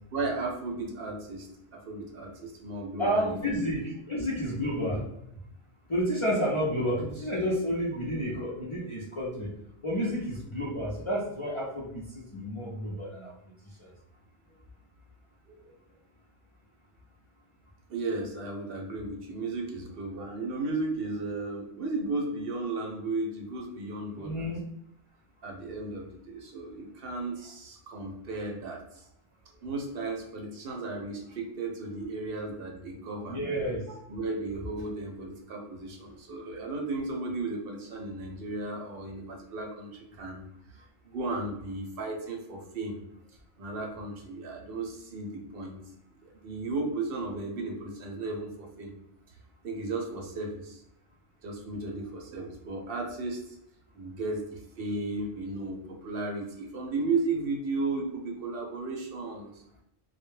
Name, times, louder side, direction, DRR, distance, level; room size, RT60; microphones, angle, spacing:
voice 1, 0.1-1.5 1.7-3.5 15.5-15.7 17.9-24.5 25.4-29.1 29.6-33.4 33.9-43.0 43.6-45.8 46.2-48.9 49.6-50.8 51.4-53.6 53.9-59.6, right 3 dB, 65° right, 1 dB, 0.8 m, -35 dB
voice 2, 3.0-5.0 5.9-9.5 9.8-12.0 12.3-13.3 24.2-24.6 33.3-33.8, equal, 40° left, -5 dB, 0.5 m, -30 dB
2.1 x 2.1 x 3.1 m, 0.77 s
omnidirectional pair, 1.1 m